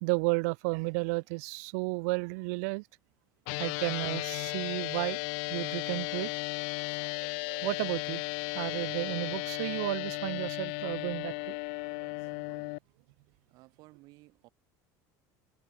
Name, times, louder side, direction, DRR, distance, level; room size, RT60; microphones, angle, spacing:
voice 1, 0.0-2.8 3.6-5.2 5.5-6.3 7.1-8.2 8.5-11.6 12.5-12.6, right 31 dB, 75° right, 0.4 m, -33 dB
sound 1, 3.5-12.8, left 40 dB or more, 65° left, 0.6 m, -35 dB
voice 2, 13.5-14.5, right 20 dB, 50° right, 7.2 m, -57 dB
cardioid pair, 175°, 8 cm